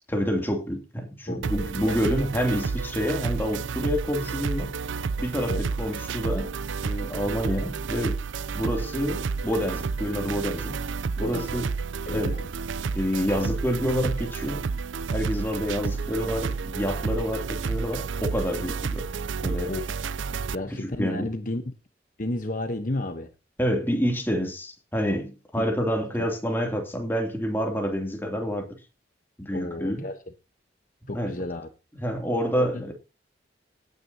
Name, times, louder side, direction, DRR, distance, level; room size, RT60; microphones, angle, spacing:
voice 1, 0.1-4.7 5.2-6.5 6.8-8.2 8.5-10.9 11.2-11.6 12.1-12.4 12.8-14.7 15.1-19.1 19.4-19.7 20.7-21.3 23.6-28.7 29.4-30.0 31.1-31.3 31.9-32.9, equal, 10° left, 2.9 m, -28 dB
voice 2, 1.3-2.0 5.5-5.6 11.2-11.5 12.1-12.5 19.7-19.9 20.5-21.6 22.2-23.3 25.6-25.7 26.2-26.3 29.5-30.2 31.1-31.7 32.6-32.8, left 1 dB, 45° left, 1.1 m, -32 dB
sound 1, 1.4-20.6, right 5 dB, 85° right, 0.5 m, -30 dB
18.5 x 9.5 x 2.9 m
head